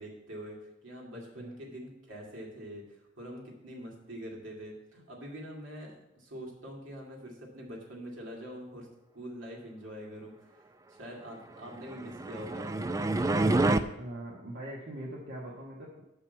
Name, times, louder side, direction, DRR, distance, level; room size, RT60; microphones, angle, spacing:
voice 1, 0.0-8.9 9.1-10.6 10.9-12.7, equal, 75° right, -2 dB, 2.4 m, -44 dB
sound 1, 11.9-13.8, right 2 dB, 15° right, 0.3 m, -27 dB
voice 2, 14.0-16.0, right 1 dB, 60° right, -5 dB, 1.3 m, -42 dB
6.3 x 5.5 x 7.1 m, 0.86 s
head